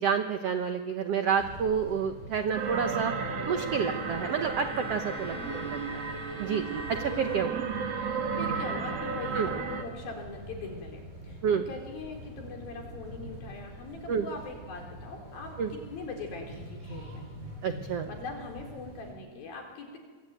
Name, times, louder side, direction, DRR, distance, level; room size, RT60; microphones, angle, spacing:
voice 1, 0.0-3.1 3.5-7.6 9.3-9.5 11.4-11.6 14.1-14.2 15.6-15.7 17.6-18.1, right 6 dB, 75° right, 7 dB, 1.4 m, -29 dB
sound 1, 1.4-19.1, right 1 dB, 20° right, 7.4 m, -45 dB
sound 2, 2.5-9.8, right 5 dB, 45° right, 3.0 m, -34 dB
Bowed string instrument, 3.7-8.2, left 6 dB, 35° left, 6.1 m, -45 dB
voice 2, 5.3-5.8 8.3-17.2 18.1-20.0, left 3 dB, 70° left, 2 dB, 5.9 m, -42 dB
25.5 x 23.0 x 9.1 m, 1.5 s
omnidirectional pair, 4.4 m